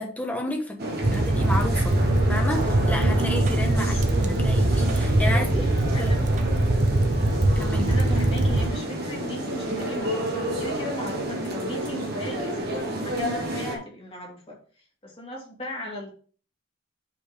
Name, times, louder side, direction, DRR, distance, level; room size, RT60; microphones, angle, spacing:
voice 1, 0.0-2.0 2.3-3.9 4.2-5.7 6.0-6.1 7.5-7.9, left 1 dB, 10° left, 1.3 m, -31 dB
sound 1, 0.8-13.8, right 1 dB, 55° right, 1.6 m, -30 dB
sound 2, 1.0-8.7, right 1 dB, 40° right, 0.7 m, -22 dB
voice 2, 5.3-6.1 7.9-14.6 15.0-16.1, left 1 dB, 30° left, 2.2 m, -37 dB
5.5 x 4.5 x 5.1 m
head